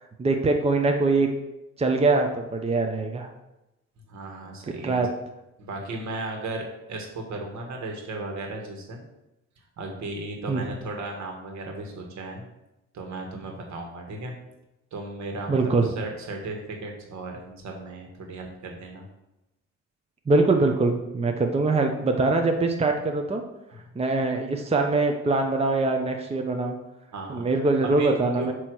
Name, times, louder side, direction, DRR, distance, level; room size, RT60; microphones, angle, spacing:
voice 1, 0.2-1.3 1.8-3.3 4.8-5.1 10.5-10.6 15.5-15.9 20.3-23.4 24.0-26.8 27.3-28.5, right 3 dB, 20° right, 4 dB, 0.7 m, -23 dB
voice 2, 4.1-5.1 5.6-9.0 9.8-12.4 12.9-14.3 14.9-19.1 23.7-23.8 27.1-27.5 27.8-28.5, right 2 dB, 65° right, 2 dB, 1.7 m, -35 dB
7.9 x 3.1 x 6.2 m, 0.94 s
cardioid pair, 90°, 30 cm